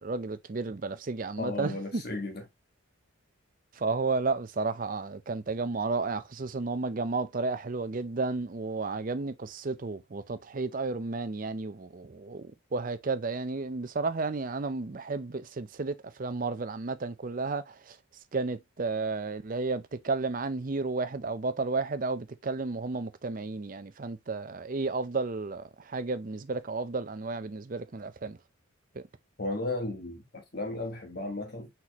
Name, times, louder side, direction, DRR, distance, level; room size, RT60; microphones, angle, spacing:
voice 1, 0.0-2.0 3.8-18.0 18.3-28.4, right 3 dB, 40° right, 0.5 m, -32 dB
voice 2, 1.4-2.4 29.4-31.7, left 2 dB, 50° left, 1.5 m, -34 dB
4.3 x 4.1 x 3.0 m
head